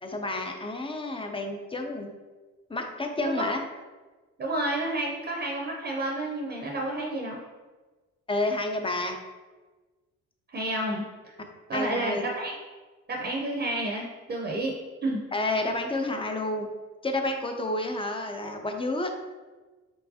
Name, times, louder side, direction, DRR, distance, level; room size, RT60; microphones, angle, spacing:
voice 1, 0.0-2.1 2.7-3.6 8.3-9.2 11.7-12.3 15.3-16.7 17.0-19.1, left 2 dB, 20° left, 4 dB, 0.5 m, -30 dB
voice 2, 4.4-7.4 10.5-11.0 11.7-12.5 13.1-14.8 15.0-15.2, right 1 dB, 35° right, -1 dB, 0.7 m, -30 dB
4.6 x 3.2 x 2.8 m, 1.3 s
cardioid pair, 90°, 30 cm